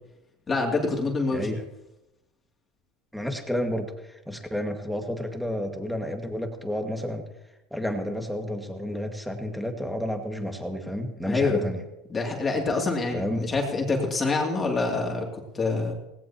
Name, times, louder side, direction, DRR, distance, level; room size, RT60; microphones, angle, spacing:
voice 1, 0.5-1.6 11.3-11.7 12.1-15.9, left 3 dB, 20° left, 0 dB, 2.7 m, -26 dB
voice 2, 1.3-1.6 3.1-7.2 7.7-11.8 13.1-13.4, equal, ahead, 3 dB, 1.9 m, -31 dB
18.5 x 17.0 x 3.0 m, 0.93 s
supercardioid pair, 125°, 0 cm